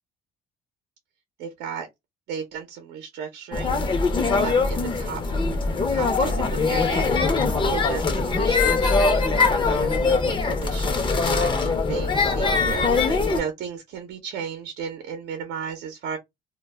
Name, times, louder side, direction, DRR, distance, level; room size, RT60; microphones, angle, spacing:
voice 1, 1.4-1.9 2.3-3.8 4.4-5.2 5.9-7.1 7.3-16.2, right 7 dB, 75° right, 0.6 m, -35 dB
sound 1, 3.5-13.4, left 4 dB, 30° left, 0.6 m, -22 dB
2.2 x 2.1 x 3.2 m
cardioid pair, 110°, 17 cm